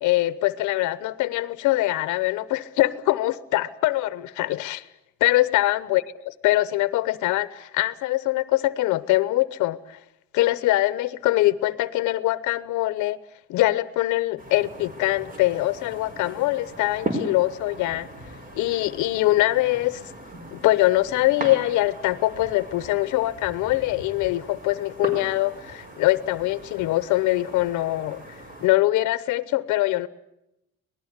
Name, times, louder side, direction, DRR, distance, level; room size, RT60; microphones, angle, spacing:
voice 1, 0.0-4.8 5.2-6.0 6.4-10.0 10.3-13.2 13.5-18.1 18.5-20.0 20.5-28.2 28.6-30.1, left 17 dB, 85° left, 1.0 m, -23 dB
sound 1, 14.4-28.7, right 1 dB, 30° right, 4.8 m, -38 dB
26.0 x 19.0 x 8.1 m
cardioid pair, 150°, 29 cm